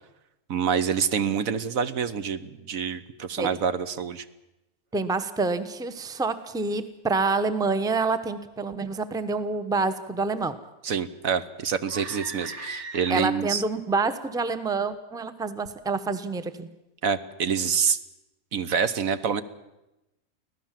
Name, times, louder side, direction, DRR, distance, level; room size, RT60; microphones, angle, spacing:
voice 1, 0.5-4.2 10.8-13.6 17.0-18.0 18.5-19.4, right 7 dB, 70° right, 12 dB, 1.3 m, -26 dB
voice 2, 4.9-10.6 13.1-16.7, right 3 dB, 5° right, 12 dB, 0.8 m, -27 dB
sound 1, 11.8-13.6, right 3 dB, 50° right, 2.5 m, -39 dB
25.0 x 16.5 x 7.5 m, 0.95 s
omnidirectional pair, 1.6 m